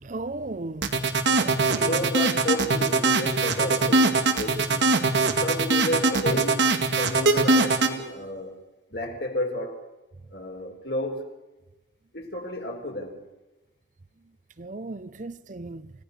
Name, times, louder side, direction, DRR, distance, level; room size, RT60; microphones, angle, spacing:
voice 1, 0.0-1.0 1.4-2.1 14.6-15.9, right 2 dB, 45° right, 0.7 m, -36 dB
sound 1, 0.8-7.9, right 3 dB, 75° right, 2.1 m, -21 dB
voice 2, 1.6-4.9 5.4-8.6 8.9-9.9 10.3-11.3 12.1-13.2, left 1 dB, 60° left, 4.0 m, -32 dB
29.0 x 16.5 x 6.6 m
head